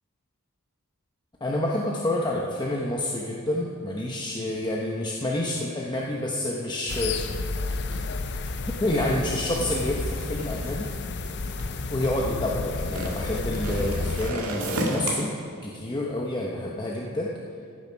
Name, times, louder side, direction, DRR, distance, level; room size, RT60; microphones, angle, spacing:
voice 1, 1.4-7.2 8.8-10.9 11.9-15.3 15.6-17.3, left 1 dB, 20° left, -2 dB, 0.8 m, -28 dB
sound 1, 6.9-14.3, left 3 dB, 55° left, 0.6 m, -31 dB
sound 2, 7.7-12.1 12.8-15.1, right 1 dB, 85° right, 1.8 m, -34 dB
15.0 x 7.1 x 5.7 m, 2.3 s
head